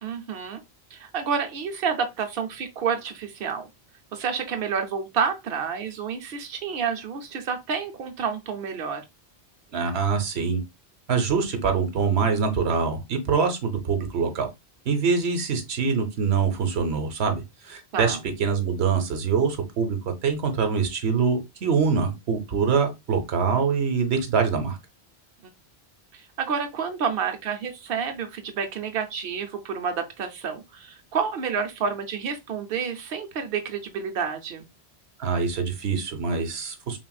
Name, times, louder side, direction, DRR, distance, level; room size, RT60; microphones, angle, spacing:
voice 1, 0.0-0.6 0.9-3.7 4.1-9.0 17.9-18.2 26.1-34.7, right 6 dB, 65° right, 0.9 m, -29 dB
voice 2, 9.7-10.6 11.1-14.5 14.9-24.8 35.2-37.0, right 5 dB, 85° right, 1.1 m, -24 dB
5.7 x 2.5 x 2.3 m
omnidirectional pair, 1.0 m